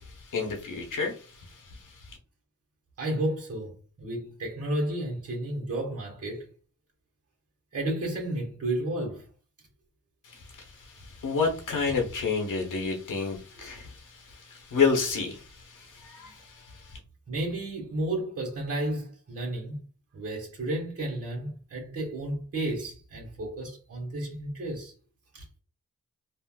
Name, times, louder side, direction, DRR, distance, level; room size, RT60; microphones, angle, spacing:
voice 1, 0.0-2.2 10.2-17.0, left 5 dB, 80° left, 0.7 m, -30 dB
voice 2, 3.0-6.5 7.7-9.3 13.6-13.7 16.2-16.3 17.3-19.8 20.1-24.9 25.3-25.4, right 1 dB, 50° right, 1.2 m, -32 dB
3.4 x 2.4 x 2.3 m
wide cardioid pair, 90°, 31 cm